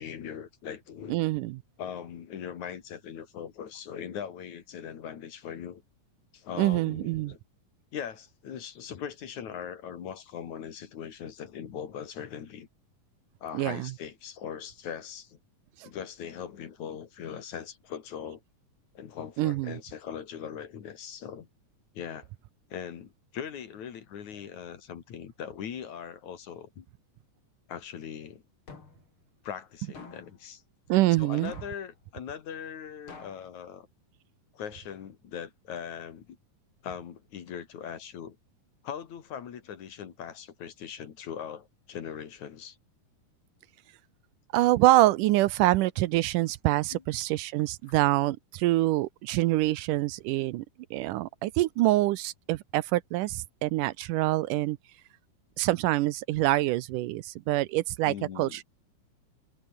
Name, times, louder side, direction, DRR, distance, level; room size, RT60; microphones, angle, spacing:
voice 1, 0.0-1.2 1.8-5.8 6.3-7.4 7.9-12.7 13.4-15.4 15.8-18.4 19.0-21.5 22.0-22.3 22.7-26.9 27.7-28.4 29.4-30.6 31.2-33.9 34.5-36.4 36.8-38.4 38.8-42.8 46.9-47.0 58.0-58.6, left 8 dB, 60° left, 3.3 m, -40 dB
voice 2, 1.1-1.6 6.6-7.3 13.5-13.9 19.4-19.8 30.9-31.5 44.5-50.7 50.9-54.8 55.6-58.6, right 17 dB, 80° right, 2.2 m, -25 dB
sound 1, 28.7-29.1 29.9-30.4 31.5-31.9 33.1-33.5, left 4 dB, 40° left, 4.2 m, -47 dB
omnidirectional pair, 3.9 m